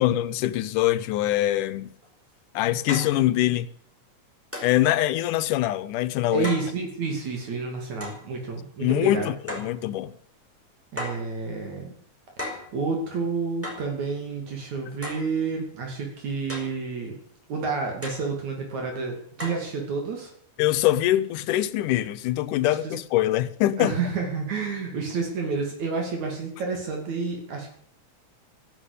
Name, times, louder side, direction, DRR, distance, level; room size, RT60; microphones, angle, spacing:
voice 1, 0.0-1.9 2.5-3.7 4.6-6.5 8.8-10.1 20.6-24.0, left 14 dB, 90° left, 2.4 m, -23 dB
sound 1, 2.0-2.1 2.9-3.2 4.5-4.8 6.4-6.7 8.0-8.2 9.5-9.8 11.0-11.3 12.4-12.7 13.6-13.9 15.0-15.3 16.5-16.8 18.0-18.3 19.4-19.7, left 1 dB, 5° right, 4.5 m, -35 dB
voice 2, 6.3-9.3 10.9-11.9 12.4-17.2 17.5-20.3 22.8-22.9 23.8-27.7, right 4 dB, 65° right, 3.9 m, -30 dB
14.0 x 12.0 x 8.3 m
omnidirectional pair, 3.6 m